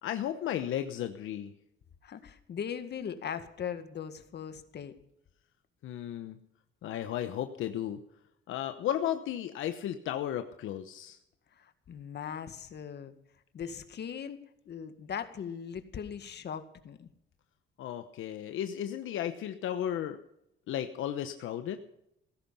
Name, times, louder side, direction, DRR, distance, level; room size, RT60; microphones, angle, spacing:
voice 1, 0.0-1.5 5.8-6.4 6.8-8.0 8.5-11.2 17.8-20.2 20.7-21.8, left 10 dB, 85° left, 8 dB, 1.1 m, -34 dB
voice 2, 2.0-4.9 11.6-13.1 13.5-14.4 14.7-17.1, left 8 dB, 60° left, 10 dB, 1.9 m, -39 dB
16.5 x 13.5 x 5.6 m, 0.78 s
cardioid pair, 90°, 20 cm